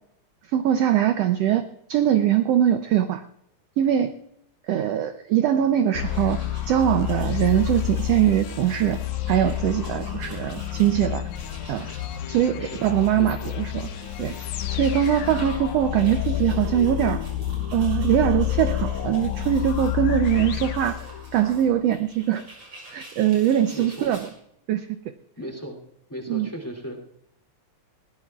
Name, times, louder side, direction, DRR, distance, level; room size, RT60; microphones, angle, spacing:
voice 1, 0.5-3.2 3.8-4.1 4.7-6.4 6.7-9.0 9.3-11.3 11.7-11.9 12.3-13.9 14.2-14.3 14.7-17.2 17.7-21.0 21.3-22.4 22.9-24.3 24.7-24.9 26.3-26.5, right 11 dB, 75° right, 8 dB, 1.6 m, -22 dB
sound 1, 5.9-21.6, left 13 dB, 85° left, 2.3 m, -29 dB
sound 2, 5.9-24.3, right 2 dB, 50° right, 7.6 m, -46 dB
voice 2, 13.2-13.5 23.7-24.1 25.3-25.8 26.1-27.0, equal, 5° left, 3 dB, 2.5 m, -36 dB
21.5 x 19.0 x 2.4 m, 0.73 s
omnidirectional pair, 3.4 m